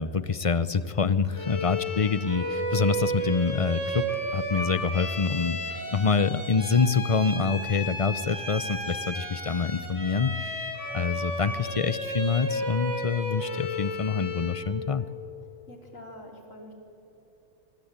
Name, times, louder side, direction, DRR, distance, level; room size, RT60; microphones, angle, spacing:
voice 1, 0.0-5.6 5.9-15.1, left 5 dB, 35° left, 15 dB, 0.6 m, -26 dB
Bowed string instrument, 1.3-14.7, equal, 15° left, 4.9 m, -33 dB
voice 2, 15.7-16.7, left 1 dB, 80° left, 3 dB, 3.8 m, -45 dB
24.0 x 24.0 x 8.9 m, 3.0 s
omnidirectional pair, 1.3 m